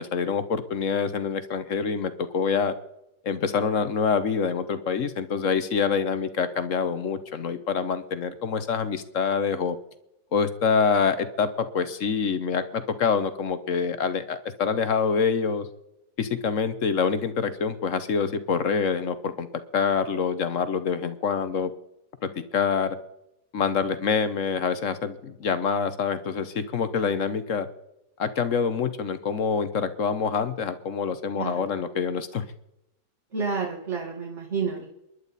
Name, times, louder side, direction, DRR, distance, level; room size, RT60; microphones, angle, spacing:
voice 1, 0.0-2.7 3.2-9.8 10.3-15.7 16.2-19.5 19.7-21.7 22.5-23.0 23.5-27.7 28.2-32.5, left 6 dB, 50° left, 11 dB, 1.1 m, -26 dB
voice 2, 33.3-34.9, right 5 dB, 40° right, -1 dB, 2.1 m, -30 dB
28.5 x 11.0 x 4.1 m, 0.85 s
omnidirectional pair, 1.9 m